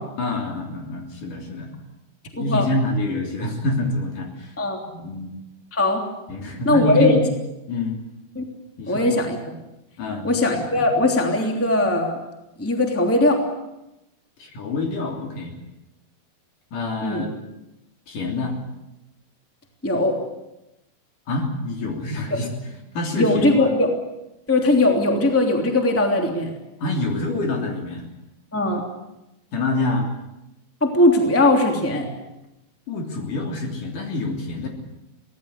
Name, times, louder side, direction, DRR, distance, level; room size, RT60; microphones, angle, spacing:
voice 1, 0.2-1.7 2.4-4.5 5.0-5.3 6.3-7.2 7.7-8.0 8.8-9.1 10.0-10.4 10.7-10.8 14.4-15.5 16.7-17.4 18.1-18.6 21.3-22.5 22.9-23.7 26.8-28.0 29.5-30.1 32.9-34.7, left 2 dB, 60° left, 2 dB, 4.7 m, -26 dB
voice 2, 2.3-2.7 4.6-4.8 5.7-6.1 6.6-7.2 8.4-8.5 8.9-9.4 10.2-12.2 12.6-13.4 17.0-17.2 19.8-20.2 22.3-22.4 23.2-23.9 24.5-26.5 28.5-28.8 30.8-32.1, left 2 dB, 5° left, 2 dB, 2.5 m, -19 dB
24.0 x 18.0 x 8.4 m, 0.92 s
omnidirectional pair, 4.4 m